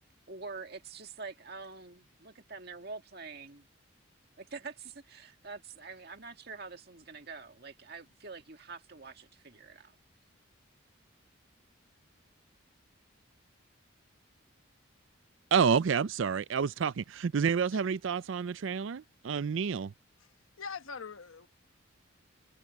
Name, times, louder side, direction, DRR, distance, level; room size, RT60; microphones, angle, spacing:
voice 1, 0.3-3.7 4.4-9.9, right 4 dB, 50° right, 2.0 m, -46 dB
voice 2, 15.5-19.9, right 6 dB, 70° right, 0.4 m, -29 dB
voice 3, 20.2-21.5, left 5 dB, 85° left, 1.1 m, -43 dB
head